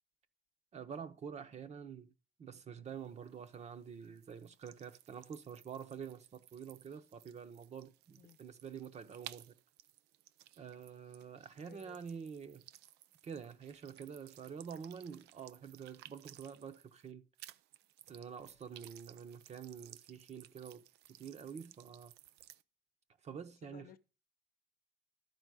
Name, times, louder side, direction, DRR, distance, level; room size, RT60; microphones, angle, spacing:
voice 1, 0.7-2.1 2.4-9.5 10.6-12.6 13.2-17.3 18.1-20.8 21.1-22.1 23.2-23.9, right 7 dB, 40° right, 0.9 m, -47 dB
sound 1, 2.9-17.1 17.4-22.6, right 14 dB, 80° right, 0.5 m, -58 dB
voice 2, 11.6-12.0 23.6-24.0, left 11 dB, 60° left, 0.8 m, -57 dB
12.0 x 4.5 x 6.2 m
cardioid pair, 110°, 17 cm